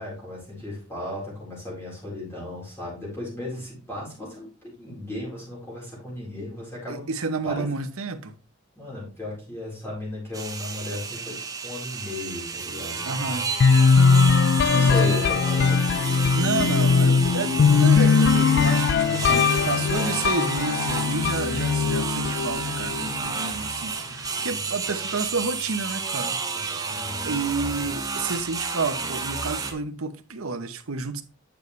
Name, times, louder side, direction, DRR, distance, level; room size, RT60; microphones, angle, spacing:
voice 1, 0.0-7.1 7.4-7.7 8.8-13.4 14.1-16.5 19.0-20.1 24.0-24.7 26.5-27.3 27.6-27.8, left 1 dB, 10° left, 4.2 m, -36 dB
voice 2, 6.9-8.3 13.1-13.5 14.6-15.2 16.3-26.4 27.2-31.2, right 4 dB, 80° right, 0.9 m, -30 dB
sound 1, 10.3-29.7, right 4 dB, 15° right, 0.8 m, -31 dB
sound 2, 13.6-23.4, left 5 dB, 50° left, 0.3 m, -20 dB
9.0 x 6.8 x 3.2 m
head